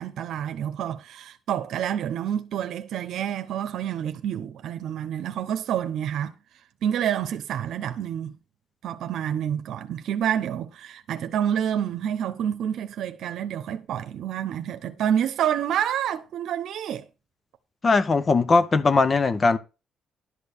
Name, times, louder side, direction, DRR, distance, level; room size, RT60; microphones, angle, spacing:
voice 1, 0.0-6.3 6.8-8.4 8.8-17.1, right 9 dB, 75° right, 0.9 m, -28 dB
voice 2, 17.8-19.6, left 4 dB, 35° left, 0.9 m, -20 dB
11.5 x 4.7 x 6.8 m
cardioid pair, 90°, 0 cm